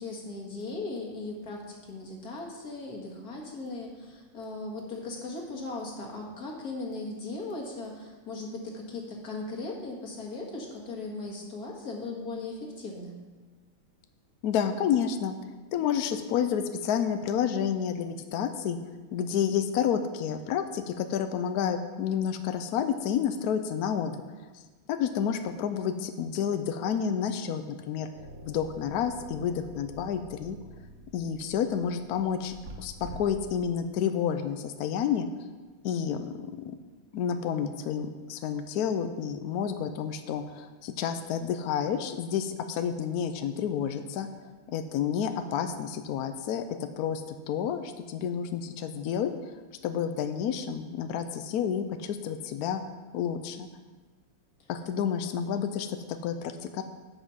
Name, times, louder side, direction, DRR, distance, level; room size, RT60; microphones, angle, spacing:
voice 1, 0.0-13.2, left 3 dB, 50° left, -1 dB, 2.1 m, -38 dB
voice 2, 14.4-15.4 15.7-18.8 19.1-24.2 24.9-28.1 28.4-30.6 31.1-35.3 35.8-36.8 37.1-44.3 44.7-49.5 49.8-52.8 53.1-53.7 54.7-56.0 56.2-56.8, left 8 dB, 80° left, 8 dB, 0.8 m, -30 dB
sound 1, 28.1-33.7, right 1 dB, 50° right, 1.3 m, -47 dB
8.6 x 7.2 x 5.6 m, 1.3 s
omnidirectional pair, 2.2 m